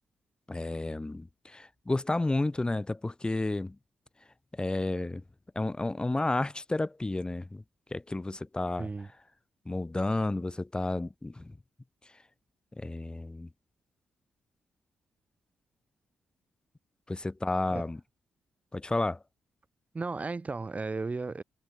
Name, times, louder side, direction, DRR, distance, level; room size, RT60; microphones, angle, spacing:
voice 1, 0.5-3.8 4.5-5.2 5.6-7.6 7.9-8.9 9.7-11.5 12.8-13.5 17.1-18.0 18.7-19.2, left 2 dB, 20° left, 3.7 m, -31 dB
voice 2, 8.8-9.1 17.7-17.8 19.9-21.4, right 3 dB, 35° right, 4.8 m, -34 dB
hypercardioid pair, 40°, 4 cm